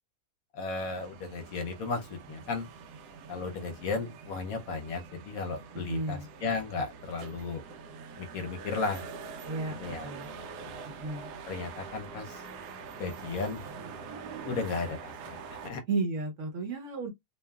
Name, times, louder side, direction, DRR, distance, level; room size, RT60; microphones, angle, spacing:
voice 1, 0.5-2.7 3.3-7.6 8.2-9.1 9.7-10.1 10.6-10.7 11.5-12.4 13.0-13.6 14.4-15.8, left 4 dB, 70° left, 1.0 m, -35 dB
sound 1, 0.8-15.7, right 5 dB, 85° right, 1.2 m, -45 dB
voice 2, 5.7-6.3 9.5-10.3 10.9-11.3 15.9-17.1, right 3 dB, 60° right, 0.9 m, -33 dB
2.9 x 2.3 x 2.2 m
omnidirectional pair, 1.7 m